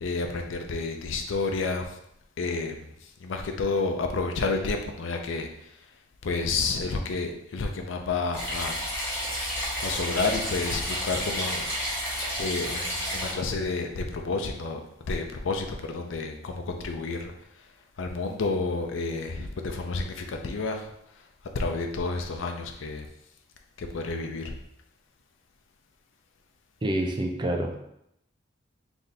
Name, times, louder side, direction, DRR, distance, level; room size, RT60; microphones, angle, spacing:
voice 1, 0.0-1.8 2.4-2.9 3.2-5.5 6.2-8.8 9.8-11.7 12.4-14.8 15.1-17.3 18.0-20.9 21.5-23.1 23.8-24.5, left 3 dB, 75° left, 3 dB, 0.5 m, -30 dB
sound 1, 8.3-13.3, equal, 10° left, 1.5 m, -31 dB
voice 2, 26.8-27.8, right 1 dB, 25° right, 3 dB, 0.4 m, -27 dB
3.4 x 2.7 x 4.0 m, 0.78 s
head